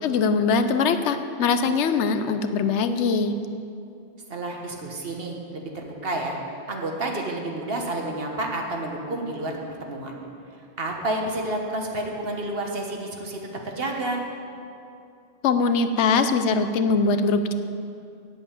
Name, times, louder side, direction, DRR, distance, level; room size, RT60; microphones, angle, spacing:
voice 1, 0.0-3.3 15.4-17.5, left 4 dB, 85° left, 10 dB, 1.0 m, -22 dB
voice 2, 4.3-6.4 6.7-10.2 10.8-14.2, right 2 dB, 60° right, 1 dB, 1.5 m, -30 dB
8.1 x 7.7 x 8.8 m, 2.5 s
omnidirectional pair, 1.1 m